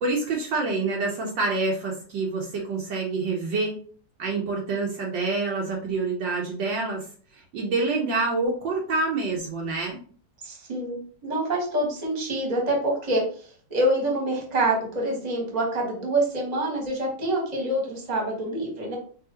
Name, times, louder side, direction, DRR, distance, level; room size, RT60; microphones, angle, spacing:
voice 1, 0.0-3.8 4.2-7.0 7.3-10.0, right 3 dB, 65° right, -1 dB, 1.5 m, -27 dB
voice 2, 10.4-19.0, right 1 dB, 25° right, -1 dB, 1.3 m, -26 dB
4.8 x 3.3 x 2.8 m, 0.44 s
omnidirectional pair, 2.3 m